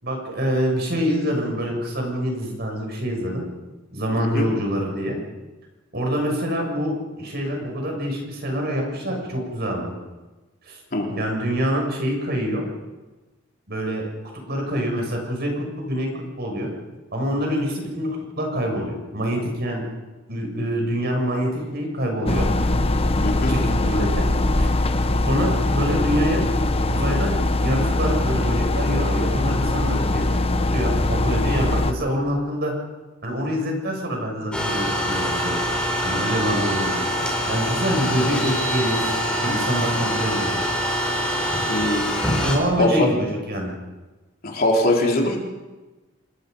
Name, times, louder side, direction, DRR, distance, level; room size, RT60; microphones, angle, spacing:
voice 1, 0.0-3.4 3.9-5.2 5.9-9.9 10.7-10.8 11.1-12.6 13.7-14.0 14.5-16.7 17.1-19.8 20.3-22.5 23.5-24.3 24.6-24.7 25.3-26.4 26.9-30.4 30.7-32.7 33.2-35.6 36.0-37.0 37.5-40.6 42.4-43.7, equal, 55° right, 1 dB, 7.0 m, -25 dB
voice 2, 4.2-4.5 10.9-11.1 23.2-23.6 41.7-42.1 42.8-43.1 44.4-45.4, left 1 dB, 50° left, 0 dB, 3.6 m, -21 dB
sound 1, 22.3-31.9, left 2 dB, 30° left, 1.1 m, -21 dB
sound 2, 34.5-42.6, equal, 5° left, 5.3 m, -24 dB
28.0 x 20.5 x 5.4 m, 1.2 s
head